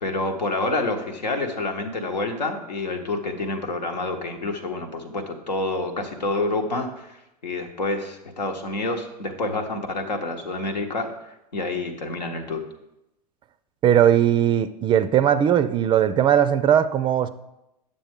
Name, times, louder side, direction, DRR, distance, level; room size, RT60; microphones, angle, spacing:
voice 1, 0.0-12.6, left 2 dB, 85° left, 4 dB, 1.2 m, -28 dB
voice 2, 13.8-17.3, right 10 dB, 25° right, 13 dB, 0.4 m, -19 dB
8.9 x 6.8 x 3.6 m, 0.89 s
hypercardioid pair, 95°, 21 cm